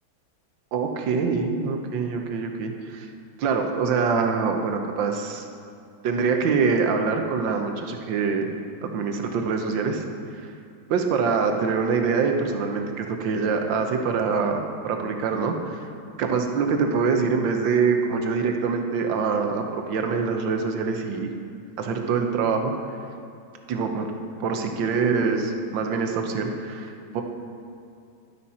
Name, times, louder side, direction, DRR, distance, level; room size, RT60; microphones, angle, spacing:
voice 1, 0.7-3.1 3.4-5.4 6.0-8.5 8.8-10.0 10.9-15.8 16.2-21.3 21.8-22.7 23.7-24.1 24.4-27.2, right 5 dB, 70° right, 4 dB, 1.6 m, -24 dB
11.5 x 9.7 x 4.3 m, 2.5 s
omnidirectional pair, 2.2 m